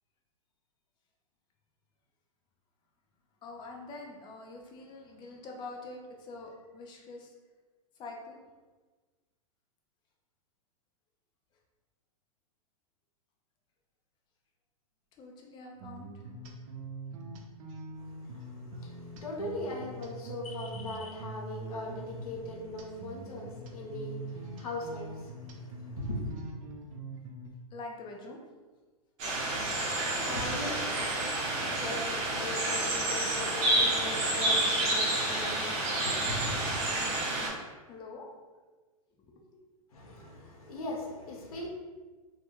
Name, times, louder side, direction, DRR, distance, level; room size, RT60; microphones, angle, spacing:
voice 1, 3.4-7.3 8.0-8.4 15.2-16.1 27.7-28.4 37.9-38.3 39.2-39.6, left 3 dB, 25° left, 0 dB, 0.5 m, -45 dB
sound 1, 15.8-27.5, right 2 dB, 60° right, 0.5 m, -44 dB
voice 2, 18.0-26.4 30.2-36.8 39.9-41.7, left 1 dB, 85° left, -2 dB, 0.7 m, -39 dB
sound 2, 29.2-37.5, right 1 dB, 45° right, 0.9 m, -29 dB
2.2 x 2.2 x 2.9 m, 1.3 s
hypercardioid pair, 120°, 19 cm